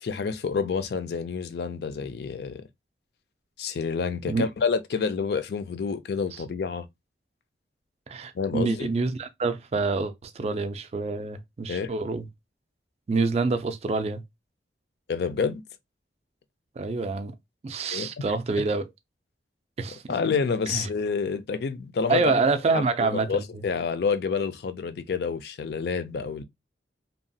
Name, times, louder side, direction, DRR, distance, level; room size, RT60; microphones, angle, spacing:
voice 1, 0.0-2.6 3.6-6.9 8.3-8.9 11.7-11.9 15.1-15.6 17.9-18.2 20.1-22.3 22.7-26.4, left 5 dB, 60° left, 0.3 m, -28 dB
voice 2, 8.1-12.3 13.1-14.2 16.8-17.3 17.6-18.8 19.8-20.1 20.7-20.9 22.1-23.4, right 4 dB, 35° right, 0.3 m, -27 dB
2.8 x 2.2 x 2.6 m
head